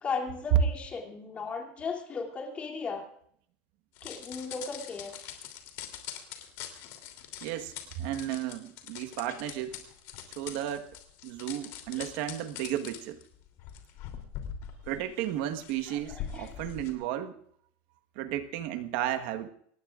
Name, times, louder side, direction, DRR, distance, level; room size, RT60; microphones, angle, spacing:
voice 1, 0.0-3.0 4.0-5.1 15.9-16.5, left 4 dB, 20° left, 1 dB, 2.9 m, -36 dB
sound 1, 4.0-16.9, left 10 dB, 50° left, 3.1 m, -43 dB
voice 2, 7.4-9.8 10.4-10.9 11.2-13.2 14.9-17.4 18.1-19.5, right 12 dB, 55° right, 8 dB, 1.4 m, -34 dB
25.0 x 19.5 x 2.5 m, 0.65 s
cardioid pair, 170°, 6 cm